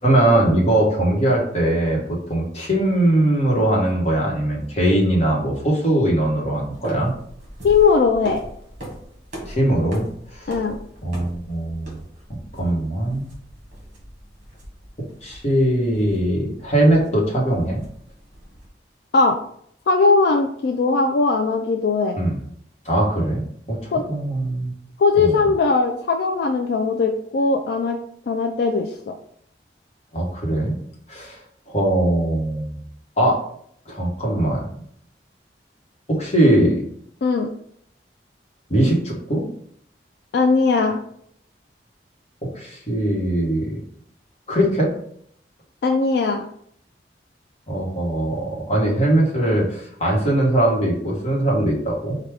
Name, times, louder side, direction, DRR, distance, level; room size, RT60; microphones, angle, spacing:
voice 1, 0.0-2.0 2.3-7.1 9.4-10.1 10.3-10.6 11.0-12.0 12.5-13.3 15.2-17.8 22.2-22.4 22.8-24.7 25.2-25.4 30.1-30.8 31.1-31.4 31.7-32.8 33.2-33.4 33.9-34.7 36.1-36.8 38.7-39.4 42.4-43.8 44.5-44.9 47.7-52.2, right 1 dB, 35° left, -2 dB, 1.1 m, -20 dB
sound 1, 6.5-18.7, equal, 45° right, 1.3 m, -40 dB
voice 2, 7.6-8.4 10.5-10.8 19.1-19.4 19.9-22.2 23.9-24.0 25.0-28.0 28.3-29.1 37.2-37.5 40.3-41.0 45.8-46.5, left 4 dB, 60° left, 4 dB, 0.3 m, -19 dB
4.6 x 2.3 x 3.4 m, 0.66 s
head